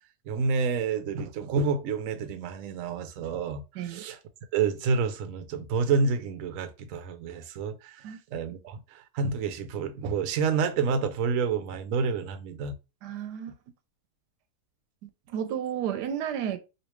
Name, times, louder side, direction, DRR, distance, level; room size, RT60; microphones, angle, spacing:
voice 1, 0.3-4.2 4.5-12.8, right 5 dB, 65° right, 0.9 m, -29 dB
voice 2, 13.0-13.5 15.0-16.6, right 9 dB, 85° right, 1.2 m, -32 dB
3.1 x 2.8 x 3.0 m
omnidirectional pair, 1.8 m